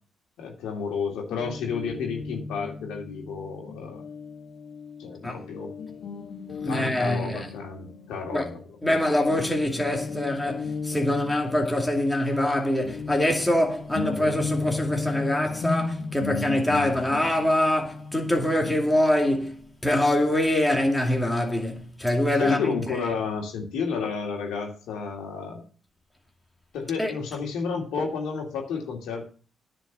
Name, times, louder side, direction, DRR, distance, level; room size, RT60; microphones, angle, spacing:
voice 1, 0.4-4.0 5.0-5.7 6.7-8.6 8.9-9.0 22.4-25.7 26.7-29.3, left 5 dB, 85° left, 2.6 m, -31 dB
Guitar, 1.3-9.0 9.3-19.7, left 4 dB, 65° left, 1.2 m, -36 dB
voice 2, 6.6-7.5 8.3-8.5 8.8-19.6 19.8-23.0 27.0-27.1, left 1 dB, 10° left, 2.4 m, -24 dB
10.0 x 5.2 x 7.4 m
cardioid pair, 90°, 0 cm